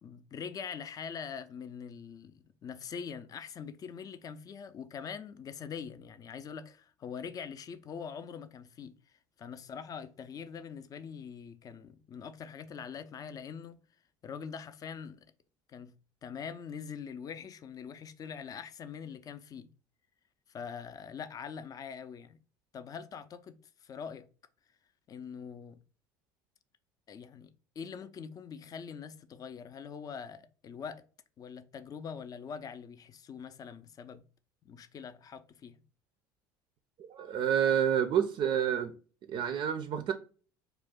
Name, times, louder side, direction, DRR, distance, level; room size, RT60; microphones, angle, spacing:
voice 1, 0.0-8.9 9.4-13.8 14.2-15.3 15.7-15.9 16.2-19.7 20.5-22.4 22.7-24.3 25.1-25.8 27.1-31.0 31.4-34.2 34.6-35.8, left 6 dB, 35° left, 0.4 m, -43 dB
voice 2, 37.0-38.9 39.3-40.1, right 9 dB, 50° right, 0.4 m, -28 dB
2.4 x 2.2 x 3.5 m
hypercardioid pair, 75°, 11 cm